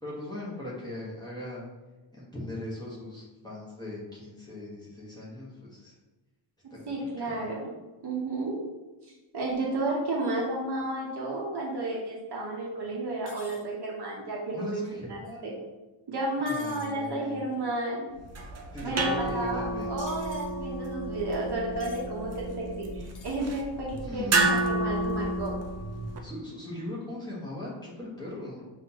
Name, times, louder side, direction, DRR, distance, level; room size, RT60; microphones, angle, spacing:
voice 1, 0.0-1.6 2.1-5.9 6.7-7.5 14.5-15.6 16.4-17.4 18.7-19.9 24.0-24.7 26.2-28.6, left 1 dB, 10° left, -8 dB, 1.3 m, -39 dB
voice 2, 6.9-7.7 8.0-8.6 9.3-14.8 15.1-15.5 16.1-18.1 18.8-25.6, right 2 dB, 50° right, -3 dB, 0.9 m, -32 dB
sound 1, 13.3-13.6 16.5-16.9 20.1-20.5 21.8-22.1 23.1-23.4, left 5 dB, 40° left, 0.5 m, -50 dB
sound 2, 18.2-26.2, right 2 dB, 35° right, 0.4 m, -31 dB
6.1 x 2.7 x 2.9 m, 1.1 s
wide cardioid pair, 175°, 49 cm